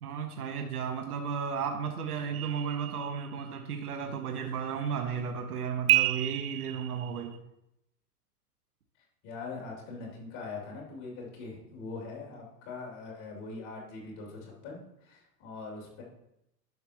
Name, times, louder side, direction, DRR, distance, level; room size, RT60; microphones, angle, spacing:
voice 1, 0.0-7.4, right 6 dB, 70° right, 5 dB, 1.1 m, -34 dB
sound 1, 2.3-3.6 5.9-7.4, right 15 dB, 40° right, 0.4 m, -30 dB
voice 2, 9.2-16.0, left 3 dB, 45° left, -2 dB, 3.1 m, -42 dB
11.0 x 5.8 x 3.0 m, 0.81 s
figure-of-eight pair, 105°, 47 cm